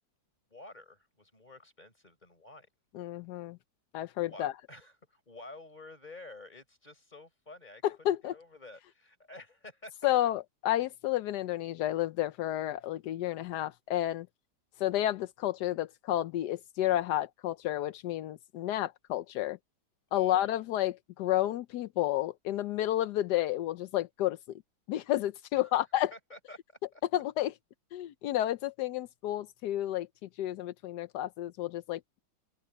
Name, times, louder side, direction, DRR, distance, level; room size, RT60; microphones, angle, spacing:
voice 1, 0.5-2.7 4.1-7.8 8.3-10.1 20.1-20.6 25.5-25.8 26.1-27.0, left 2 dB, 25° left, 4.7 m, -50 dB
voice 2, 2.9-3.6 3.9-4.5 7.8-8.3 10.0-14.3 14.8-19.6 20.1-24.4 24.9-26.1 27.1-27.5 27.9-32.2, left 13 dB, 85° left, 1.3 m, -31 dB
open air
omnidirectional pair, 1.7 m